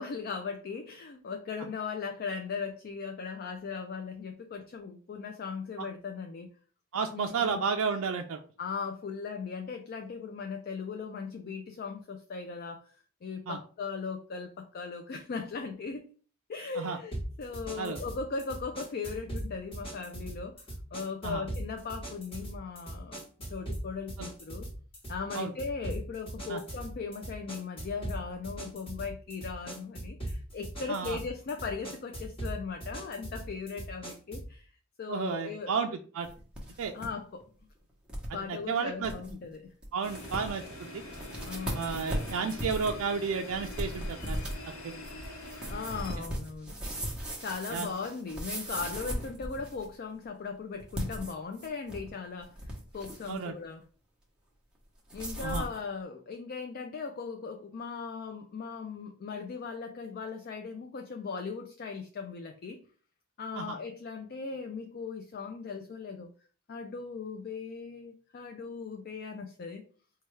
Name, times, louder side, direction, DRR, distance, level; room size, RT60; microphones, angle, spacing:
voice 1, 0.0-6.5 7.1-7.6 8.6-13.0 13.2-16.1 16.5-23.2 23.5-24.7 25.1-34.7 35.0-35.7 36.9-37.5 38.3-39.7 41.4-42.1 45.6-46.9 47.4-53.8 55.1-62.8 63.4-66.3 66.7-69.8, left 5 dB, 45° left, 5 dB, 0.3 m, -38 dB
voice 2, 6.9-8.4 13.5-13.6 16.8-17.0 17.8-18.0 21.2-21.4 24.2-24.3 25.3-25.5 26.5-26.6 30.9-31.2 35.1-35.9 36.1-36.3 36.8-36.9 38.7-39.1 39.9-41.0 41.7-44.4 44.8-45.0 47.7-47.9 53.3-53.5 55.4-55.6 63.6-63.8, right 5 dB, 70° right, 3 dB, 0.3 m, -32 dB
sound 1, 17.1-34.6, right 1 dB, 25° left, 1.1 m, -40 dB
sound 2, 36.2-37.1 37.4-37.5 38.1-38.3 38.7-38.8 39.0-39.3 39.8-39.9 40.2-40.7 41.1-49.9 50.8-52.1 52.4-53.4 55.1-55.8, equal, 5° right, 0.8 m, -37 dB
sound 3, 40.0-46.1, left 2 dB, 75° left, 1.0 m, -44 dB
4.3 x 2.3 x 3.1 m, 0.41 s
head